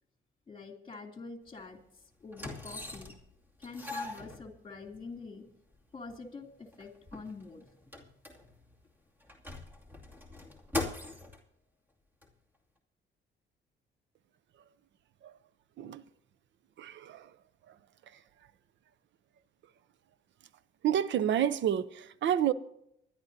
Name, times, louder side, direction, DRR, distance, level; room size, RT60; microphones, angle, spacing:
voice 1, 0.5-1.8 2.2-3.1 3.6-5.4 5.9-7.7, left 4 dB, 25° left, 2.8 m, -45 dB
sound 1, 1.5-1.6 2.3-3.3 3.6-5.0 5.7-5.8 6.1-6.2 6.6-8.8 9.2-11.4 12.2-12.3, left 2 dB, 10° right, 2.5 m, -40 dB
voice 2, 16.8-17.4 17.7-17.8 18.1-18.2 20.8-22.5, right 10 dB, 70° right, 0.7 m, -30 dB
25.0 x 11.0 x 2.8 m
cardioid pair, 90°, 20 cm